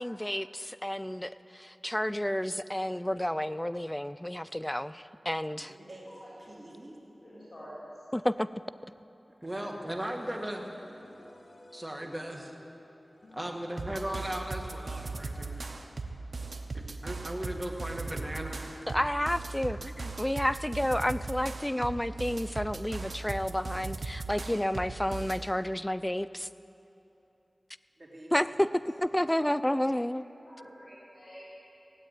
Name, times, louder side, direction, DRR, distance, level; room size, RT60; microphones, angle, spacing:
voice 1, 0.0-5.7 8.1-8.5 18.9-26.5 28.3-30.3, left 1 dB, 10° left, 13 dB, 0.4 m, -30 dB
voice 2, 5.6-6.1 6.4-6.9 9.4-9.9 20.8-20.9 28.0-28.6 29.0-29.2, right 1 dB, 55° right, -4 dB, 3.2 m, -49 dB
voice 3, 7.2-7.7 29.8-29.9 30.5-31.4, equal, 55° left, -8 dB, 3.9 m, -49 dB
voice 4, 9.4-10.7 11.7-12.5 13.3-15.6 17.0-18.6, right 1 dB, 20° right, 2 dB, 1.8 m, -36 dB
sound 1, 9.8-15.9, left 1 dB, 75° left, 1.5 m, -56 dB
sound 2, 13.8-25.5, right 3 dB, 70° right, 0.9 m, -38 dB
16.5 x 8.2 x 9.3 m, 2.9 s
wide cardioid pair, 60°, 0 cm